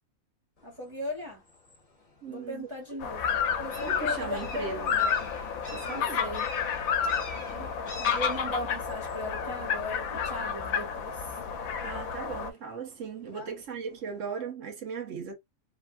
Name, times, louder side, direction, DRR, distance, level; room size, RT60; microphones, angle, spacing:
sound 1, 0.6-14.4, left 1 dB, 25° left, 1.2 m, -49 dB
voice 1, 0.6-1.4 2.3-3.2 3.6-5.2 5.8-6.4 8.0-11.3 13.3-13.5, left 2 dB, 20° right, 1.2 m, -37 dB
voice 2, 2.2-2.7 3.8-5.0 5.7-6.2 7.4-7.7 11.8-15.3, right 6 dB, 65° right, 1.3 m, -38 dB
sound 2, 3.0-12.5, left 7 dB, 85° left, 1.1 m, -31 dB
3.3 x 2.5 x 2.2 m
omnidirectional pair, 1.4 m